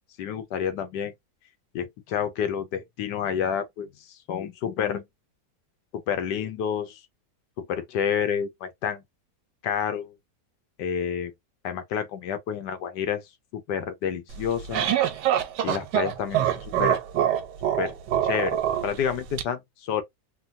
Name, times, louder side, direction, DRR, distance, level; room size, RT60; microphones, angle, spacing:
voice 1, 0.2-1.1 1.7-5.0 5.9-7.0 7.6-9.0 9.6-10.1 10.8-11.3 11.6-14.8 15.6-17.0 17.8-17.9 18.2-20.0, left 8 dB, 80° left, 1.3 m, -29 dB
sound 1, 14.3-19.4, right 11 dB, 90° right, 1.3 m, -25 dB
3.4 x 2.2 x 2.6 m
omnidirectional pair, 1.8 m